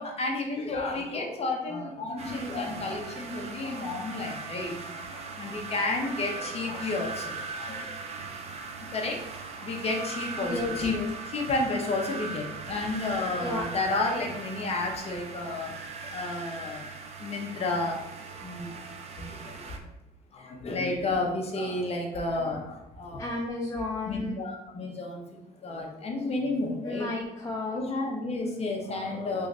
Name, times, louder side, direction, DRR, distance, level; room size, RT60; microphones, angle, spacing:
voice 1, 0.0-8.0 8.9-9.2 9.6-11.0 11.3-15.7 16.1-16.9 17.2-18.0 18.4-19.6 20.3-23.3 24.1-27.1 27.7-29.5, left 2 dB, 40° left, 1 dB, 0.8 m, -31 dB
sound 1, 2.2-19.8, right 4 dB, 40° right, 0.5 m, -39 dB
voice 2, 10.4-11.1 13.4-13.7 23.2-24.4 26.8-27.8, left 2 dB, 20° left, -1 dB, 0.3 m, -33 dB
3.1 x 2.4 x 3.8 m, 0.90 s
cardioid pair, 110°, 17 cm